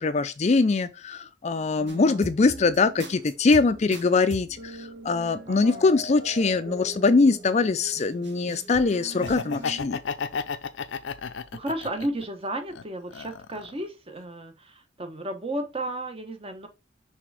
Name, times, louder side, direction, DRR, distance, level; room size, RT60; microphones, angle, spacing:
voice 1, 0.0-10.0, left 3 dB, 35° left, 0.4 m, -22 dB
voice 2, 1.8-2.3 5.5-5.9 11.5-16.7, right 1 dB, 30° right, 1.0 m, -34 dB
sound 1, 1.9-9.8, right 1 dB, 70° right, 2.1 m, -41 dB
Laughter, 9.1-12.2 12.7-13.8, left 5 dB, 85° left, 0.5 m, -33 dB
6.0 x 3.4 x 4.7 m
head